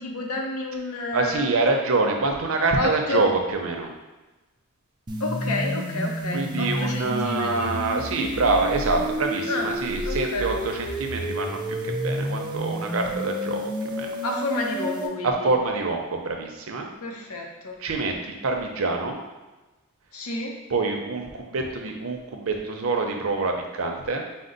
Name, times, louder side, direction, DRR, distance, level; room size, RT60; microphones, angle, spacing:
voice 1, 0.0-1.5 2.7-3.2 5.2-7.7 9.5-9.7 10.0-10.5 14.2-15.5 17.0-17.8 20.1-20.5, left 2 dB, 90° left, 1 dB, 0.7 m, -30 dB
voice 2, 1.1-3.9 6.3-11.6 11.8-14.1 15.2-16.9 17.8-19.2 20.7-24.2, right 3 dB, 70° right, 2 dB, 0.6 m, -26 dB
sound 1, 5.1-15.1, equal, 20° right, 0.4 m, -30 dB
5.0 x 2.0 x 3.8 m, 1.1 s
head